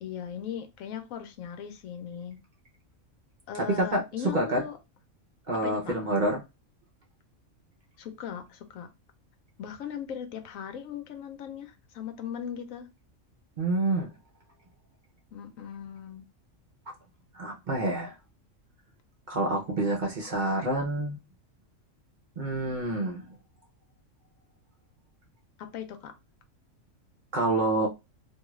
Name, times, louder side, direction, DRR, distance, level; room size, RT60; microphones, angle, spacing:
voice 1, 0.0-2.4 3.5-4.8 5.6-5.9 8.0-8.9 9.6-12.9 15.3-16.2 25.6-26.1, left 8 dB, 85° left, 1.0 m, -38 dB
voice 2, 3.6-4.0 4.3-4.6 5.5-6.4 13.6-14.1 17.3-18.1 19.3-21.2 22.4-23.3 27.3-27.9, right 2 dB, 50° right, 0.6 m, -27 dB
2.6 x 2.4 x 3.0 m
omnidirectional pair, 1.4 m